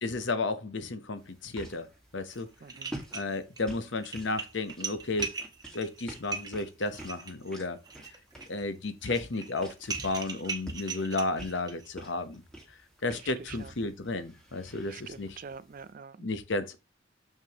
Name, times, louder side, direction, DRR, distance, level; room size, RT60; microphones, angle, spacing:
voice 1, 0.0-1.9 2.1-2.5 3.1-5.3 5.7-7.8 8.5-12.4 13.0-15.4 16.2-16.8, left 3 dB, 60° left, 0.9 m, -33 dB
sound 1, 1.1-15.9, right 1 dB, 5° left, 1.8 m, -49 dB
sound 2, 2.3-2.4 2.7-3.6 4.0-11.9, right 4 dB, 20° right, 1.0 m, -39 dB
voice 2, 2.6-2.9 13.2-13.7 14.9-16.3, right 6 dB, 40° right, 0.4 m, -46 dB
6.7 x 6.4 x 2.9 m
head